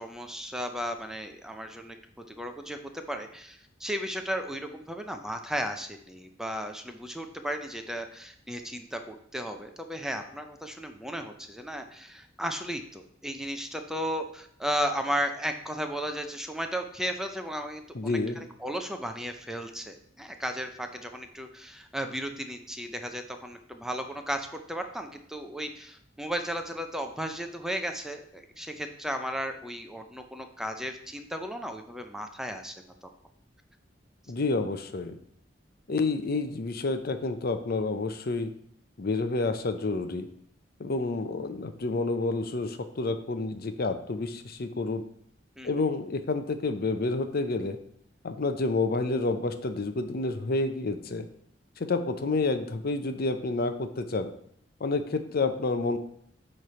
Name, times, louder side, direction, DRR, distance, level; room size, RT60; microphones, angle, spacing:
voice 1, 0.0-2.0 2.3-32.7 33.0-33.1 45.6-45.9, equal, 5° right, 6 dB, 0.5 m, -35 dB
voice 2, 17.9-18.4 34.3-35.2 35.9-38.5 39.0-40.3 40.8-45.0 45.6-47.8 48.2-51.2 51.8-54.3 54.8-56.0, left 3 dB, 55° left, 8 dB, 0.6 m, -29 dB
9.0 x 3.3 x 5.6 m, 0.65 s
head